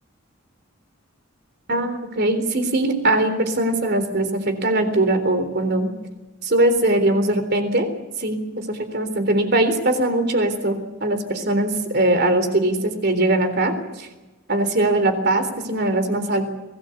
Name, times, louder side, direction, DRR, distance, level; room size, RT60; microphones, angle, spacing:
voice 1, 1.7-5.9 6.4-7.9 8.2-14.1 14.5-16.5, right 1 dB, 55° right, 8 dB, 3.7 m, -21 dB
23.5 x 18.0 x 8.3 m, 1.1 s
head